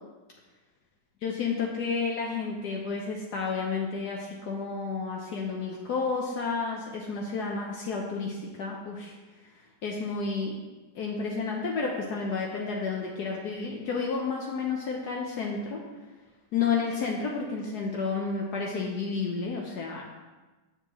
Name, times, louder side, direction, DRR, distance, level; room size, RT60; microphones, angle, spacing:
voice 1, 1.2-9.1 9.8-10.6 10.9-15.8 16.5-20.0, left 4 dB, 70° left, -1 dB, 1.2 m, -31 dB
8.5 x 6.8 x 3.0 m, 1.2 s
omnidirectional pair, 1.9 m